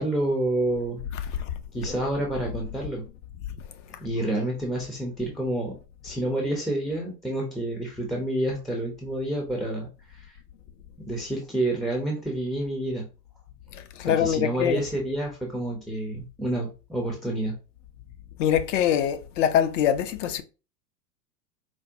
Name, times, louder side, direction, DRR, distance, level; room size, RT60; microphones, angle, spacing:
voice 1, 0.0-1.0 1.7-3.1 4.0-5.8 6.0-10.4 11.0-13.1 14.0-17.6, right 1 dB, ahead, 0.5 m, -29 dB
voice 2, 1.1-1.5 13.7-14.8 18.4-20.4, left 9 dB, 50° left, 0.7 m, -24 dB
4.5 x 2.1 x 2.7 m
hypercardioid pair, 100°, 47 cm